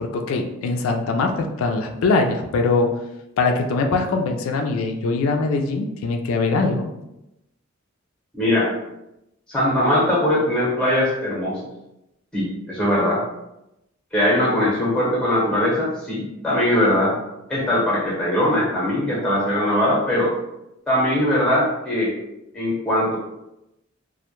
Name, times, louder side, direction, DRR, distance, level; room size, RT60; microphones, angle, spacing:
voice 1, 0.0-2.9 3.4-6.9, left 3 dB, 80° left, 5 dB, 0.3 m, -22 dB
voice 2, 8.3-8.8 9.5-11.6 12.3-13.2 14.1-17.2 17.5-20.3 20.9-22.2 22.5-23.2, left 1 dB, 5° left, -5 dB, 0.7 m, -20 dB
2.1 x 2.1 x 2.9 m, 0.90 s
head